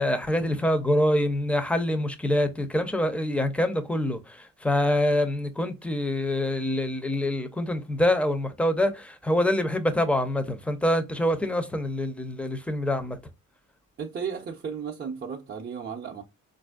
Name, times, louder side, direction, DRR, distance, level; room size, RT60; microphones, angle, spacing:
voice 1, 0.0-13.2, left 1 dB, 5° left, 0.6 m, -25 dB
voice 2, 14.0-16.2, right 6 dB, 35° right, 0.6 m, -34 dB
4.0 x 2.6 x 2.3 m
cardioid pair, 90°, 30 cm